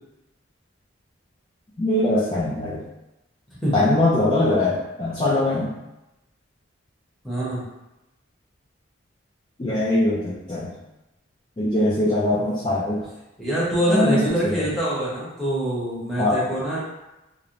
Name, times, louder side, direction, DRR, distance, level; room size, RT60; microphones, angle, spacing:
voice 1, 1.8-2.8 3.7-5.7 9.6-10.7 11.6-13.0 13.9-14.2 14.4-14.7 16.2-16.4, left 1 dB, 25° left, -8 dB, 0.3 m, -22 dB
voice 2, 7.2-7.6 13.4-16.8, right 1 dB, ahead, -9 dB, 0.7 m, -24 dB
2.5 x 2.1 x 2.8 m, 0.97 s
head